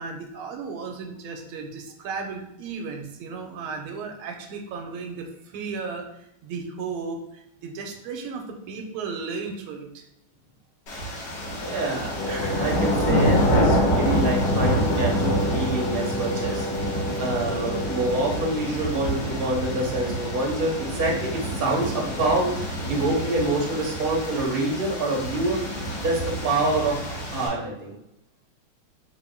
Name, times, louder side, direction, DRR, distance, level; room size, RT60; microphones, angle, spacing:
voice 1, 0.0-10.1, right 4 dB, 90° right, 3 dB, 1.5 m, -35 dB
sound 1, 10.9-27.5, equal, 60° left, 1.7 m, -27 dB
voice 2, 11.6-27.0 27.3-27.9, right 2 dB, 55° right, -3 dB, 0.6 m, -27 dB
Wind instrument woodwind instrument, 12.1-18.7, left 1 dB, 85° left, 1.6 m, -32 dB
4.2 x 2.1 x 3.5 m, 0.82 s
omnidirectional pair, 2.3 m